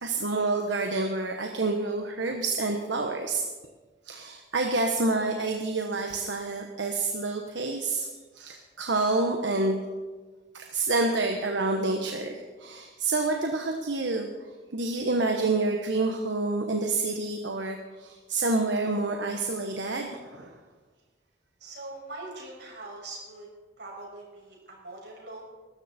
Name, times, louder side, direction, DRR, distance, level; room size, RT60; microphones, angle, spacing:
voice 1, 0.0-3.4 4.1-8.1 8.3-9.8 10.5-14.3 14.7-20.5, right 3 dB, 90° right, 3 dB, 1.3 m, -28 dB
voice 2, 21.6-23.5 23.8-25.5, right 2 dB, 70° right, -3 dB, 6.5 m, -42 dB
21.0 x 13.5 x 4.4 m, 1.3 s
head